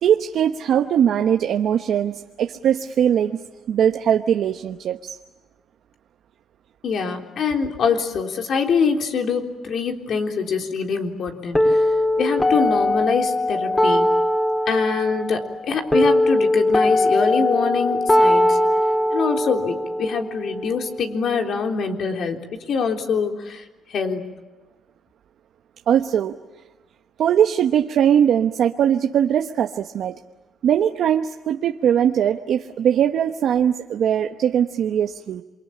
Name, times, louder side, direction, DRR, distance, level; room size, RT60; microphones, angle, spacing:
voice 1, 0.0-3.4 3.7-5.2 25.9-26.3 27.2-30.1 30.6-35.4, right 9 dB, 70° right, 6 dB, 1.1 m, -20 dB
voice 2, 6.8-11.9 12.2-14.1 14.7-18.6 19.1-23.6 23.9-24.2, left 5 dB, 65° left, 4 dB, 3.6 m, -24 dB
sound 1, 11.5-21.5, left 1 dB, 15° left, 5.0 m, -20 dB
28.0 x 24.5 x 8.7 m, 1.2 s
cardioid pair, 90°, 0 cm